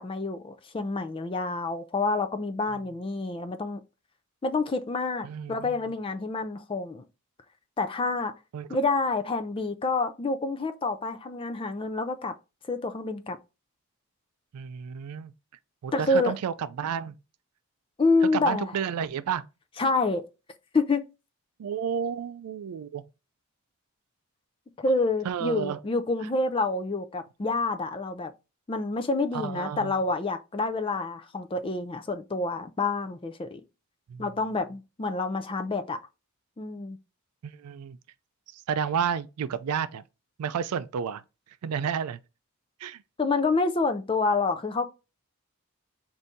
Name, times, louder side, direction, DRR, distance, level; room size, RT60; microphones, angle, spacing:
voice 1, 0.0-3.8 4.4-7.0 7.8-8.3 8.7-12.3 12.7-13.4 15.9-16.3 18.0-18.7 19.8-20.3 20.7-21.0 24.8-28.3 28.7-33.6 34.2-36.0 36.6-37.0 43.2-44.9, left 3 dB, 25° left, 0.3 m, -28 dB
voice 2, 5.2-5.8 8.5-8.7 14.5-15.3 15.8-17.1 18.3-19.5 21.6-23.0 25.2-25.8 29.3-29.9 34.1-34.3 37.4-38.0 38.5-40.0 40.4-41.2 41.6-42.2 42.8-43.0, right 7 dB, 85° right, 0.4 m, -31 dB
4.0 x 2.6 x 3.5 m
head